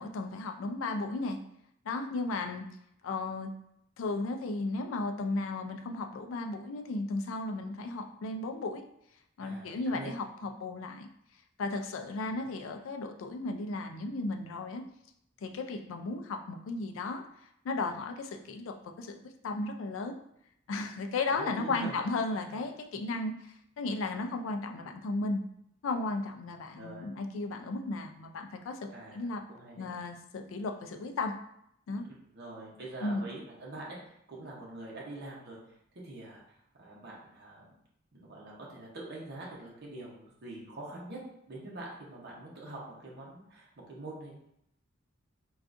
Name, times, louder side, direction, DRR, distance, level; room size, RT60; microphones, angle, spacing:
voice 1, 0.0-1.4 1.9-2.6 3.0-3.5 4.0-8.8 9.4-11.1 11.6-14.8 15.4-17.2 17.6-19.2 19.4-20.2 20.7-25.4 25.8-29.4 29.8-31.3 31.9-32.0 33.0-33.3, left 3 dB, 75° left, 5 dB, 0.4 m, -35 dB
voice 2, 9.4-10.5 12.3-12.5 21.3-21.9 22.3-22.6 26.8-27.1 28.9-29.9 32.0-35.6 36.0-36.4 36.8-37.8 38.1-41.2 41.5-44.3, right 2 dB, 55° right, -4 dB, 0.7 m, -45 dB
3.5 x 2.4 x 2.5 m, 0.75 s
head